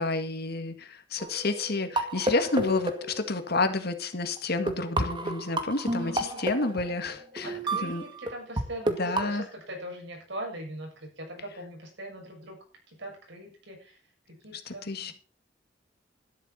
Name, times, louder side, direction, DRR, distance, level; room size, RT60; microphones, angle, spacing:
voice 1, 0.0-7.5 7.8-8.0 8.9-9.4 14.5-15.1, left 3 dB, 60° left, 8 dB, 1.9 m, -30 dB
sound 1, 1.2-3.7 4.4-4.5 4.7-8.6 8.9-9.3, right 1 dB, 25° right, 2.1 m, -31 dB
voice 2, 5.9-6.7 7.4-12.6 12.9-14.0 14.3-15.1, right 1 dB, 70° right, 1 dB, 7.1 m, -41 dB
12.5 x 11.5 x 4.4 m, 0.37 s
head